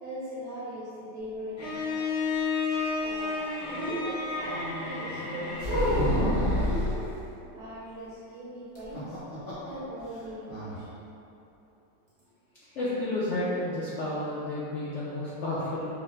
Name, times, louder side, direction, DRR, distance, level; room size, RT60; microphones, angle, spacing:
voice 1, 0.0-2.2 2.7-5.8 6.5-7.1 7.5-10.9 12.7-12.8, right 1 dB, 75° right, -6 dB, 1.0 m, -39 dB
Bowed string instrument, 1.6-6.4, left 4 dB, 60° left, 2.1 m, -32 dB
sound 1, 5.6-7.0 8.7-9.7 10.0-10.1 10.5-10.7, equal, 40° left, 0.6 m, -26 dB
voice 2, 12.8-15.9, left 1 dB, 80° left, -9 dB, 0.6 m, -31 dB
5.2 x 2.0 x 3.1 m, 2.8 s
omnidirectional pair, 1.9 m